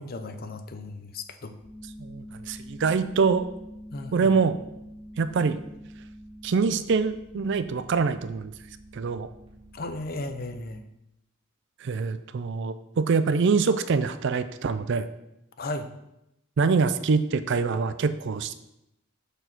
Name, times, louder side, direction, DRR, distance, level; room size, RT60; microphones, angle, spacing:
voice 1, 0.0-1.5 3.9-4.4 9.7-10.8 15.6-15.9, left 2 dB, 45° left, 9 dB, 0.6 m, -35 dB
sound 1, 1.6-10.7, equal, 25° right, 2.2 m, -46 dB
voice 2, 2.0-3.5 4.1-4.6 5.2-5.6 6.4-8.5 8.9-9.3 11.8-15.1 16.6-18.5, right 5 dB, 55° right, 13 dB, 0.4 m, -24 dB
6.6 x 4.6 x 5.9 m, 0.85 s
head